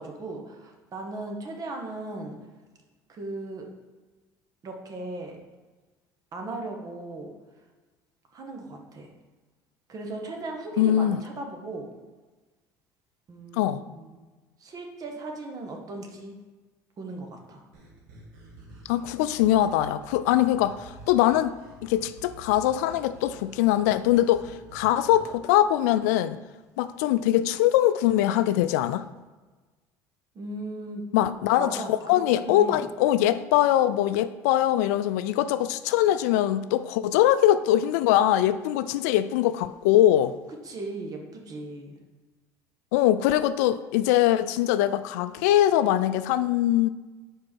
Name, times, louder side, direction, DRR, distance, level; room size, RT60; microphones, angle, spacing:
voice 1, 0.0-2.4 3.1-3.6 4.6-5.4 6.3-7.3 8.3-9.1 9.9-11.9 13.3-14.2 14.6-16.3 17.0-17.6 30.3-31.0 31.6-32.8 40.6-41.9, right 2 dB, 45° right, 2 dB, 1.5 m, -37 dB
voice 2, 10.8-11.2 13.5-13.8 18.9-21.6 21.8-26.4 26.8-29.1 31.1-40.3 42.9-46.9, left 12 dB, 80° left, 13 dB, 0.3 m, -22 dB
sound 1, 17.7-25.4, right 2 dB, 80° right, 1.6 m, -49 dB
4.9 x 4.7 x 6.2 m, 1.3 s
hypercardioid pair, 75°, 9 cm